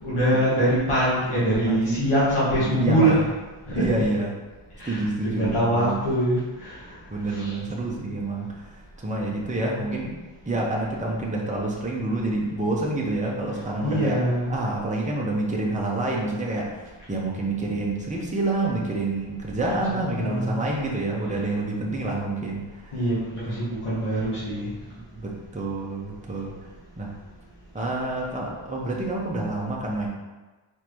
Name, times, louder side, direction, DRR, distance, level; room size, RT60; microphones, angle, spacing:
voice 1, 0.0-3.2 3.7-4.0 4.8-6.8 7.3-7.5 13.8-14.5 19.9-20.6 22.9-24.7, right 1 dB, 85° left, -10 dB, 1.5 m, -24 dB
voice 2, 1.7-2.2 2.6-3.3 3.7-4.4 4.8-6.0 7.1-8.7 9.0-10.2 10.5-14.2 14.5-22.9 23.5-23.6 25.0-26.5 27.0-27.1 27.7-30.1, right 2 dB, 15° right, -2 dB, 0.8 m, -28 dB
4.4 x 3.8 x 3.1 m, 1.2 s
wide cardioid pair, 100°, 50 cm